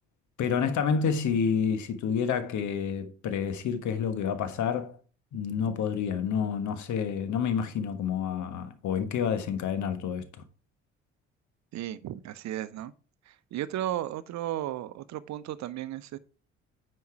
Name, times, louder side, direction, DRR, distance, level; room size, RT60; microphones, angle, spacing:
voice 1, 0.4-5.0 5.3-10.3, left 7 dB, 55° left, 1.4 m, -29 dB
voice 2, 11.7-12.9 13.3-16.2, right 12 dB, 50° right, 0.8 m, -35 dB
9.4 x 5.4 x 4.6 m
figure-of-eight pair, 45°, 36 cm